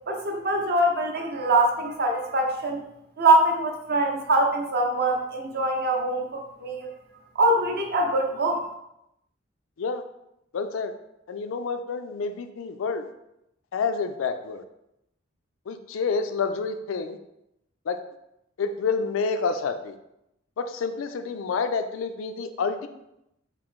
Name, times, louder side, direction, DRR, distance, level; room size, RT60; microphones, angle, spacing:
voice 1, 0.1-2.8 3.2-6.9 7.3-8.7, right 2 dB, 55° right, 2 dB, 0.6 m, -23 dB
voice 2, 10.5-10.9 11.3-13.1 13.7-14.6 15.7-17.2 17.9-18.0 18.6-19.9 20.6-22.9, left 5 dB, 85° left, 9 dB, 0.4 m, -28 dB
3.7 x 2.7 x 3.6 m, 0.84 s
head